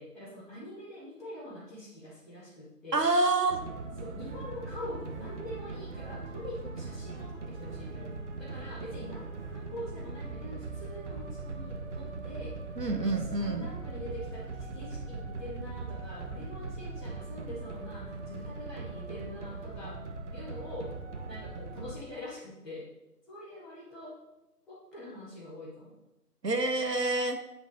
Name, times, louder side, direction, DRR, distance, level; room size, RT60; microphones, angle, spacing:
voice 1, 0.0-3.0 4.0-12.6 12.8-20.0 20.3-20.9 21.3-22.9 23.3-24.2 24.7-25.9, left 1 dB, ahead, -16 dB, 1.0 m, -44 dB
voice 2, 2.9-3.6 12.8-13.7 26.4-27.4, right 2 dB, 90° right, 6 dB, 1.7 m, -27 dB
sound 1, 3.5-22.0, right 3 dB, 45° right, 1.2 m, -40 dB
9.2 x 5.4 x 6.8 m, 0.95 s
figure-of-eight pair, 150°, 48 cm